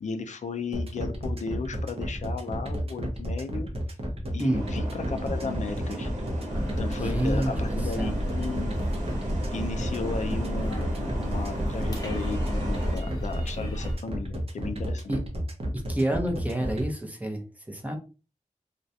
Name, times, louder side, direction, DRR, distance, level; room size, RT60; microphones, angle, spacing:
voice 1, 0.0-3.7 4.3-6.1 6.8-8.8 9.5-15.1, left 4 dB, 70° left, 6 dB, 0.4 m, -35 dB
sound 1, 0.7-16.8, right 1 dB, 50° right, 0.6 m, -32 dB
sound 2, 4.5-13.0, right 1 dB, 80° right, 0.9 m, -35 dB
sound 3, 6.5-14.0, equal, 25° left, 0.9 m, -33 dB
voice 2, 7.0-8.1 15.1-15.2 15.9-18.0, right 1 dB, 10° right, 3 dB, 0.6 m, -29 dB
2.3 x 2.1 x 2.6 m, 0.33 s
wide cardioid pair, 100°, 13 cm